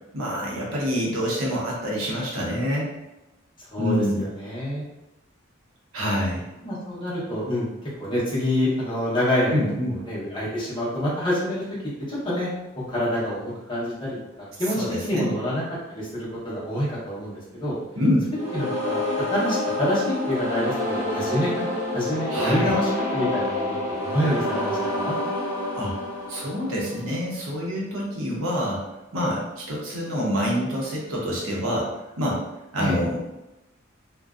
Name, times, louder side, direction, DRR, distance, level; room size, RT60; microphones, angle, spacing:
voice 1, 0.1-2.9 3.8-4.3 5.9-6.4 9.5-10.0 14.7-15.3 18.0-18.3 22.3-22.8 25.8-25.9 26.3-28.8 29.1-32.4 32.7-33.3, equal, 90° right, -4 dB, 0.8 m, -26 dB
voice 2, 3.7-4.8 6.6-7.7 8.0-9.6 10.0-11.6 12.1-12.5 12.8-15.6 15.9-17.7 18.5-19.0 19.3-25.1 32.8-32.9, equal, 25° left, -8 dB, 0.8 m, -27 dB
sound 1, 18.3-27.2, left 1 dB, 15° right, 0.7 m, -28 dB
2.5 x 2.2 x 2.4 m, 0.98 s
head